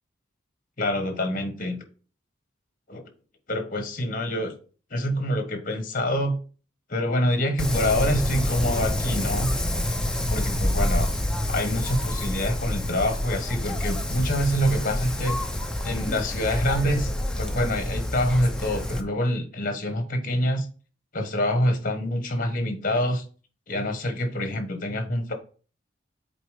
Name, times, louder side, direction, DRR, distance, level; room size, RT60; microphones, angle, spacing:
voice 1, 0.8-1.8 2.9-3.1 3.5-4.5 4.9-6.4 6.9-9.5 10.1-11.1 11.5-15.4 15.8-17.1 17.4-20.7 21.1-23.3 23.7-25.3, left 1 dB, 45° left, 7 dB, 1.2 m, -26 dB
Wind, 7.6-19.0, left 1 dB, 5° left, 0.6 m, -27 dB
6.9 x 4.3 x 4.9 m, 0.40 s
head